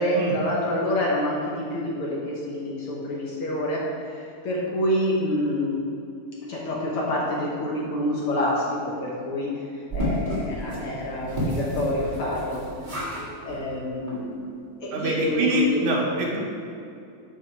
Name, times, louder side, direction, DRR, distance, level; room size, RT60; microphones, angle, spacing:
voice 1, 0.0-5.7 6.4-12.6 13.4-14.4 14.8-15.8, left 1 dB, 65° left, -4 dB, 1.4 m, -27 dB
sound 1, 9.9-13.2 13.5-13.6 14.1-14.2 14.4-14.5, equal, 20° right, 1.3 m, -30 dB
voice 2, 14.9-16.4, right 1 dB, 70° right, -3 dB, 2.5 m, -24 dB
7.1 x 6.2 x 4.5 m, 2.5 s
omnidirectional pair, 3.7 m